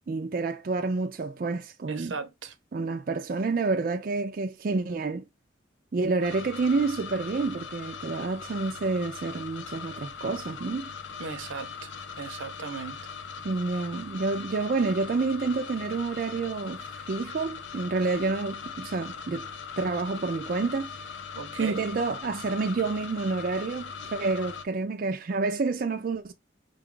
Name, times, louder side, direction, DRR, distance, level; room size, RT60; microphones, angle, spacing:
voice 1, 0.1-2.1 2.7-5.2 5.9-10.9 13.4-19.5 19.8-20.9 21.6-26.3, right 3 dB, 45° right, 0.4 m, -29 dB
voice 2, 1.9-2.5 11.2-11.9 12.2-13.0 21.3-21.8, right 5 dB, 80° right, 0.7 m, -37 dB
sound 1, 6.2-24.7, left 6 dB, 75° left, 0.6 m, -40 dB
5.3 x 2.3 x 3.7 m
head